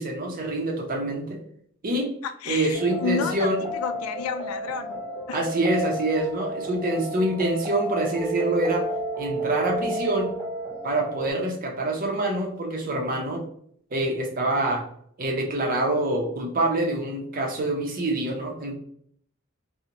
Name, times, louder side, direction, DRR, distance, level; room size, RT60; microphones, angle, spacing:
voice 1, 0.0-1.4 1.8-2.1 2.5-3.6 5.3-8.8 9.2-10.3 10.8-13.4 13.9-14.8 15.2-18.8, right 2 dB, 40° right, 0.5 m, -26 dB
voice 2, 2.2-5.4, left 5 dB, 90° left, 0.3 m, -31 dB
sound 1, 2.7-11.3, right 1 dB, 25° left, 1.3 m, -32 dB
2.9 x 2.0 x 2.5 m
head